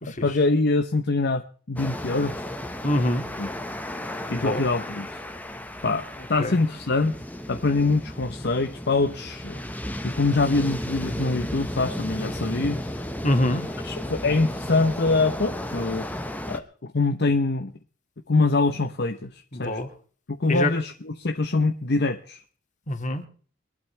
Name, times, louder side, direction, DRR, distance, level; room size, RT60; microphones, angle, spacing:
voice 1, 0.0-2.5 3.4-3.5 4.3-5.1 5.8-7.2 7.5-9.6 10.0-12.8 13.8-16.1 16.5-17.7 18.3-19.8 20.3-22.4, left 3 dB, 60° left, 0.9 m, -24 dB
sound 1, 1.8-16.6, left 1 dB, 10° left, 1.3 m, -34 dB
voice 2, 2.8-3.2 4.3-4.7 6.4-6.6 13.2-13.7 19.5-19.9 20.5-20.7 22.9-23.3, left 1 dB, 40° left, 2.4 m, -25 dB
23.0 x 11.5 x 3.3 m
head